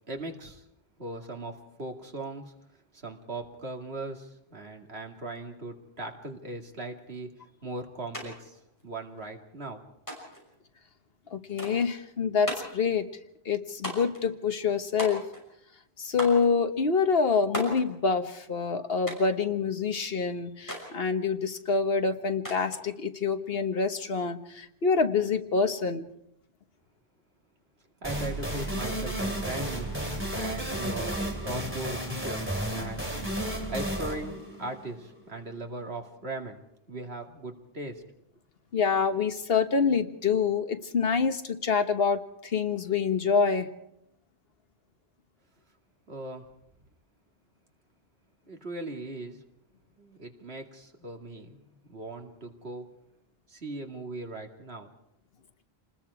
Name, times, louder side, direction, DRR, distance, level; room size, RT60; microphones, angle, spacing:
voice 1, 0.1-0.6 1.0-2.5 2.9-7.3 7.6-9.8 28.0-29.9 30.3-32.4 32.7-33.1 33.7-36.6 36.9-38.0 46.1-46.4 48.5-49.4 50.0-52.9 53.5-54.9, right 2 dB, 85° right, 3 dB, 2.6 m, -39 dB
sound 1, 8.1-8.3 8.5-9.3 10.1-10.5 11.6-11.9 12.5-12.8 13.8-14.2 15.0-15.5 16.2-16.5 17.5-17.9 19.1-19.4 20.7-20.9 22.4-22.8, equal, 20° left, 6.1 m, -36 dB
voice 2, 11.3-13.1 13.4-15.2 16.0-26.1 38.7-43.7, left 5 dB, 70° left, 8 dB, 1.4 m, -26 dB
sound 2, 28.0-35.5, right 1 dB, 10° right, 3.0 m, -32 dB
28.0 x 20.0 x 4.8 m, 0.79 s
omnidirectional pair, 1.0 m